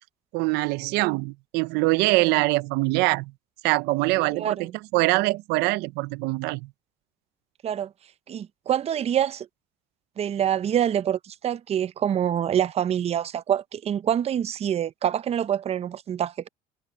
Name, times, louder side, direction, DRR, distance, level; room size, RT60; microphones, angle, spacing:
voice 1, 0.3-3.3 3.6-6.7, right 22 dB, 85° right, 0.7 m, -24 dB
voice 2, 4.3-4.7 7.6-7.9 8.3-9.5 10.2-16.5, right 10 dB, 40° right, 0.6 m, -26 dB
cardioid pair, 105°, 17 cm